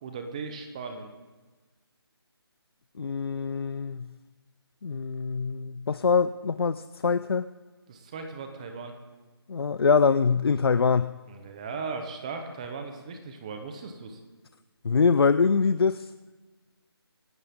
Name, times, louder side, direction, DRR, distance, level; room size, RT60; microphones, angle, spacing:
voice 1, 0.0-1.1 7.9-8.9 11.3-14.2, right 4 dB, 15° right, 6 dB, 0.8 m, -37 dB
voice 2, 3.0-4.1 4.8-7.4 9.5-11.1 14.8-16.1, left 5 dB, 65° left, 13 dB, 0.5 m, -24 dB
25.0 x 11.5 x 3.7 m, 1.3 s
figure-of-eight pair, 170°, 13 cm